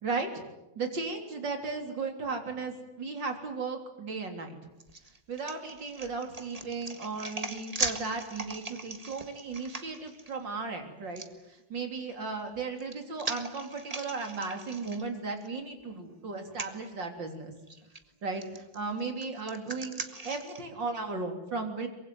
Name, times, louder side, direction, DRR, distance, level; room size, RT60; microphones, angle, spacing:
voice 1, 0.0-0.4 0.8-4.6 5.3-11.2 11.5-17.5 18.2-21.9, right 4 dB, 65° right, 4 dB, 4.2 m, -36 dB
Someone being gutted, 4.8-10.3 11.2-11.3 12.5-15.5 15.8-16.0 16.5-16.7 17.7-18.0 18.4-20.6, right 2 dB, 20° right, 1.5 m, -39 dB
24.0 x 23.0 x 9.6 m, 0.96 s
omnidirectional pair, 2.1 m